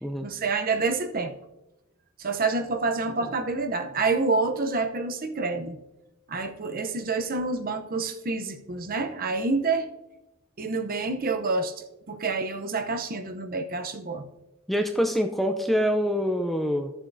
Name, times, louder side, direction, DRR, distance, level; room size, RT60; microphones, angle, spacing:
voice 1, 0.2-1.3 2.2-5.8 6.3-9.9 10.6-11.7 12.1-14.3, right 3 dB, 45° right, 7 dB, 0.7 m, -28 dB
voice 2, 14.7-16.9, equal, ahead, 4 dB, 0.5 m, -25 dB
14.0 x 7.2 x 2.6 m, 0.95 s
head